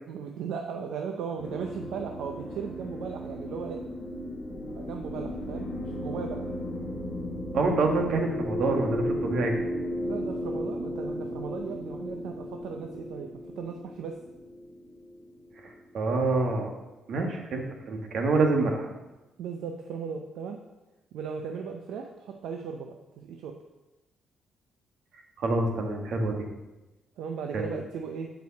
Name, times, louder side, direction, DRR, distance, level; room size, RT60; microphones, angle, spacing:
voice 1, 0.1-3.8 4.5-6.5 10.0-13.3 13.6-14.2 19.4-20.6 21.1-23.6 27.2-28.3, right 6 dB, 85° right, 3 dB, 0.6 m, -37 dB
sound 1, 1.4-16.0, left 1 dB, 50° left, 1.6 m, -35 dB
voice 2, 7.5-9.5 15.6-16.7 17.1-18.9 25.4-26.5 27.5-27.7, right 3 dB, 65° right, 3 dB, 1.5 m, -27 dB
6.2 x 5.6 x 6.5 m, 1.0 s
cardioid pair, 90°, 0 cm